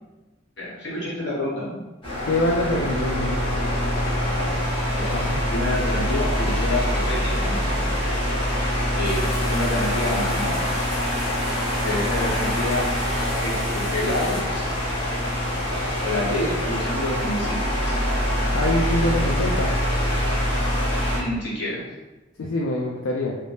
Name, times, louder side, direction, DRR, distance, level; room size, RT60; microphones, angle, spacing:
voice 1, 0.6-1.8 4.2-4.5 4.9-5.1 5.5-7.6 8.9-10.5 11.8-12.8 13.2-14.7 16.0-18.0 21.1-21.8, left 1 dB, 60° left, -6 dB, 1.0 m, -28 dB
sound 1, 2.0-21.2, equal, 25° left, 0.9 m, -24 dB
voice 2, 2.3-3.6 5.1-5.4 18.5-19.7 22.4-23.4, left 1 dB, 80° left, -2 dB, 0.3 m, -25 dB
sound 2, 9.0-14.4, equal, 5° right, 0.5 m, -39 dB
2.6 x 2.1 x 3.3 m, 1.1 s
head